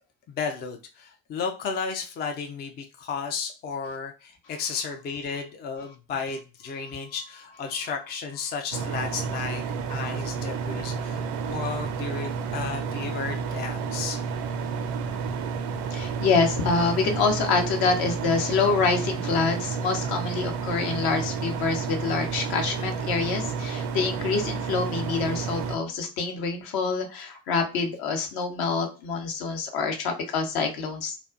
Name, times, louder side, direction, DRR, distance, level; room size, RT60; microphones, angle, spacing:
voice 1, 0.3-9.6 9.9-14.2, left 5 dB, 25° left, 4 dB, 0.4 m, -33 dB
sound 1, 8.7-25.8, right 5 dB, 55° right, 0.5 m, -31 dB
voice 2, 15.9-31.2, left 4 dB, 55° left, 4 dB, 0.8 m, -26 dB
2.4 x 2.2 x 2.4 m, 0.31 s
figure-of-eight pair, 55°, 45 cm